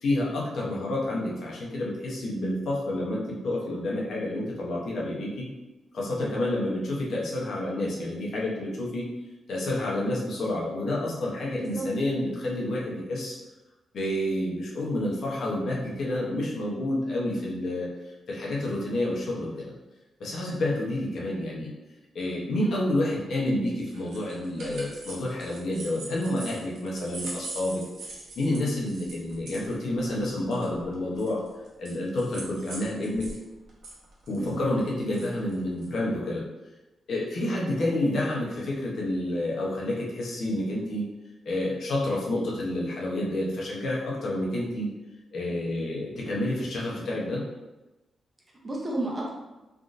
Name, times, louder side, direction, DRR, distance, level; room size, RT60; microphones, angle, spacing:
voice 1, 0.0-5.5 5.9-9.1 9.5-13.4 13.9-17.9 18.3-19.7 20.2-21.7 22.1-31.4 31.8-33.3 34.3-36.4 37.1-41.0 41.5-44.9 45.3-47.4, left 1 dB, 60° left, -3 dB, 0.7 m, -29 dB
voice 2, 11.5-11.9 22.6-22.8 34.4-34.6 37.4-37.6 48.6-49.3, right 2 dB, 20° right, -2 dB, 0.5 m, -32 dB
sound 1, 23.9-33.4 33.7-35.9, right 2 dB, 70° right, 0.8 m, -42 dB
3.6 x 2.5 x 2.5 m, 1.0 s
wide cardioid pair, 165°, 0 cm